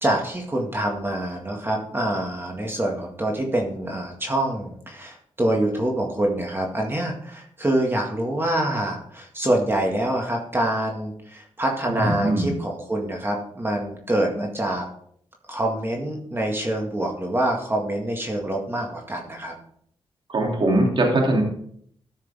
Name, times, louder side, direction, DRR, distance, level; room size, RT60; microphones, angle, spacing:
voice 1, 0.0-14.9 15.5-19.5, right 1 dB, 20° right, 0 dB, 1.9 m, -25 dB
voice 2, 11.9-12.5 20.3-21.4, right 1 dB, 55° right, 0 dB, 2.8 m, -21 dB
13.0 x 6.5 x 3.5 m, 0.64 s
cardioid pair, 65°, 10 cm